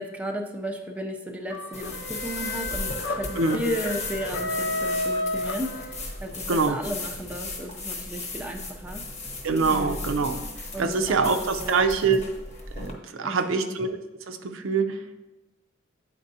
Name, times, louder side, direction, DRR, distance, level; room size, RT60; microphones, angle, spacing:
voice 1, 0.0-9.1 9.7-10.1 10.7-12.1 13.2-13.8, equal, 5° right, 2 dB, 0.4 m, -34 dB
sound 1, 1.5-6.3, left 2 dB, 60° left, 0.4 m, -31 dB
sound 2, 1.7-12.9, left 2 dB, 35° left, 0.9 m, -36 dB
voice 2, 9.4-10.4 10.8-12.2 12.8-14.0 14.3-15.2, right 4 dB, 65° right, 8 dB, 0.5 m, -24 dB
8.5 x 4.4 x 2.7 m, 1.0 s
head